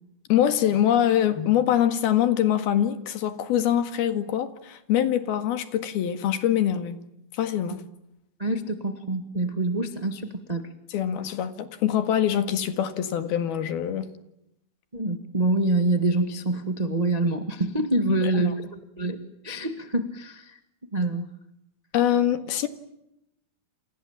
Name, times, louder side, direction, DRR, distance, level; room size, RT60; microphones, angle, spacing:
voice 1, 0.3-7.0 7.3-7.8 10.9-14.1 18.1-18.5 21.9-22.7, left 10 dB, 80° left, 10 dB, 3.7 m, -24 dB
voice 2, 8.4-10.7 14.9-19.2 19.4-20.6 20.9-21.3, right 2 dB, 30° right, 8 dB, 0.7 m, -26 dB
29.0 x 28.0 x 7.4 m, 0.83 s
omnidirectional pair, 4.4 m